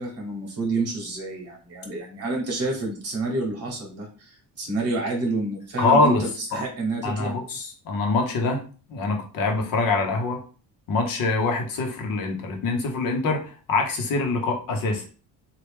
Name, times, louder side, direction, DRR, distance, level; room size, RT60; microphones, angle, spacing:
voice 1, 0.0-7.4, right 2 dB, 45° right, 0 dB, 1.0 m, -29 dB
voice 2, 5.8-6.2 6.5-6.6 7.0-8.6 8.9-10.4 10.9-15.0, left 3 dB, 75° left, 3 dB, 1.0 m, -24 dB
3.1 x 2.4 x 3.3 m, 0.38 s
cardioid pair, 160°, 34 cm